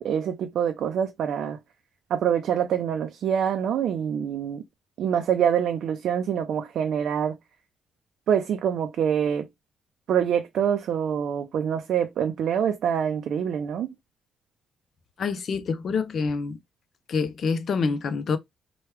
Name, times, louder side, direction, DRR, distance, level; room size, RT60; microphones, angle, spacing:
voice 1, 0.0-1.6 2.1-4.6 5.0-7.4 8.3-9.5 10.1-13.9, right 8 dB, 70° right, 0.4 m, -25 dB
voice 2, 15.2-16.6 17.1-18.4, left 5 dB, 55° left, 0.5 m, -26 dB
3.0 x 2.2 x 3.2 m
cardioid pair, 90°, 0 cm